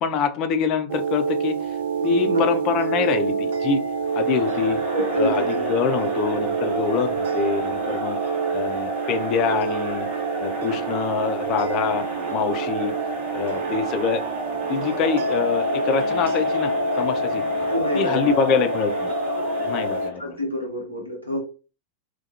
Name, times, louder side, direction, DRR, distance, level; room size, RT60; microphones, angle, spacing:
voice 1, 0.0-1.6 2.0-3.8 4.1-4.8 5.1-5.4 5.7-8.2 8.5-10.1 10.4-12.0 12.3-12.9 13.3-14.2 14.7-17.4 17.9-19.1 19.6-20.4, left 6 dB, 40° left, 9 dB, 0.4 m, -25 dB
sound 1, 0.9-20.1, right 3 dB, 60° right, 0.4 m, -27 dB
voice 2, 2.0-2.4 3.0-3.1 4.9-6.1 17.7-18.7 20.2-21.4, equal, 90° right, 0 dB, 0.8 m, -28 dB
Crowd, 4.1-20.2, right 1 dB, 35° right, 0.9 m, -33 dB
2.3 x 2.2 x 2.7 m, 0.35 s
figure-of-eight pair, 90°, 0 cm